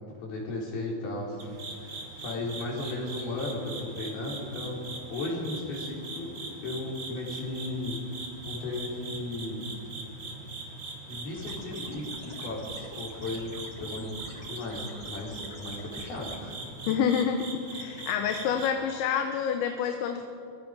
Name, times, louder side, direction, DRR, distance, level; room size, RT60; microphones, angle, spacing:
voice 1, 0.0-6.3 6.6-8.1 8.4-9.7 11.1-14.1 14.5-17.0, left 2 dB, 55° left, -3 dB, 5.9 m, -35 dB
sound 1, 1.4-18.7, right 3 dB, 35° right, 2.8 m, -41 dB
sound 2, 11.4-16.4, left 1 dB, 20° left, 1.1 m, -48 dB
voice 2, 16.9-20.2, left 7 dB, 80° left, 6 dB, 3.2 m, -28 dB
26.5 x 22.5 x 5.3 m, 2.5 s
omnidirectional pair, 5.4 m